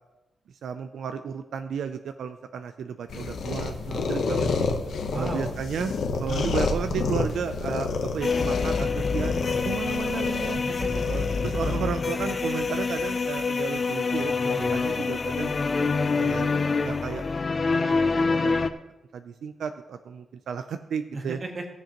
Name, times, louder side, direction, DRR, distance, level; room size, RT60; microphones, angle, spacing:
voice 1, 0.6-4.7 5.1-5.9 6.2-9.3 9.6-10.6 11.1-14.3 14.7-15.6 16.1-16.5 16.8-17.3 17.5-18.6 19.1-21.4, right 7 dB, 85° right, 8 dB, 0.4 m, -33 dB
sound 1, 3.1-11.8, left 4 dB, 75° left, 0.9 m, -30 dB
voice 2, 3.8-4.5 5.1-5.5 6.2-6.5 10.7-11.0 14.4-14.7 21.1-21.7, right 3 dB, 40° right, 2 dB, 1.6 m, -35 dB
sound 2, 8.2-18.7, left 4 dB, 35° left, 0.5 m, -26 dB
17.0 x 7.5 x 3.0 m, 1.0 s
wide cardioid pair, 140°, 0 cm